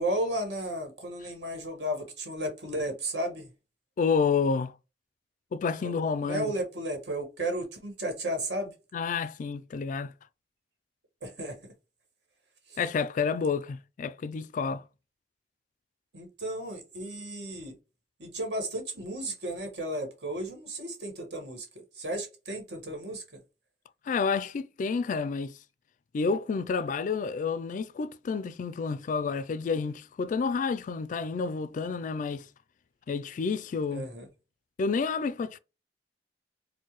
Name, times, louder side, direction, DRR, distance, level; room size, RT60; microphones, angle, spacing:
voice 1, 0.0-3.5 5.8-5.9 6.2-8.7 11.2-11.6 12.7-12.8 16.1-17.8 18.2-21.7 21.9-23.2 33.9-34.3, right 1 dB, 75° right, 1.5 m, -34 dB
voice 2, 4.0-4.7 5.5-6.5 8.9-10.1 12.8-14.8 24.1-25.6 26.1-32.5 33.1-34.1 34.8-35.6, left 5 dB, 45° left, 0.3 m, -29 dB
4.4 x 2.1 x 3.0 m
head